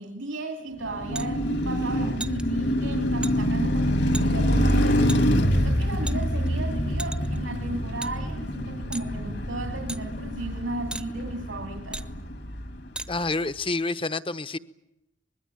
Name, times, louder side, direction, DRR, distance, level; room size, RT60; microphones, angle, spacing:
voice 1, 0.0-12.0, right 2 dB, 80° right, 2.8 m, -35 dB
Car passing by, 0.8-13.0, equal, 60° left, 2.4 m, -26 dB
sound 1, 1.1-1.3 2.2-2.4 3.2-3.3 4.1-4.3 5.1-5.2 6.1-6.5 7.0-7.4 8.0-8.1 8.9-9.1 9.9-10.0 10.9-11.1 11.9-12.1 13.0-13.1, right 2 dB, 5° right, 0.9 m, -35 dB
voice 2, 13.1-14.6, left 3 dB, 30° left, 1.0 m, -28 dB
24.5 x 21.5 x 9.3 m
head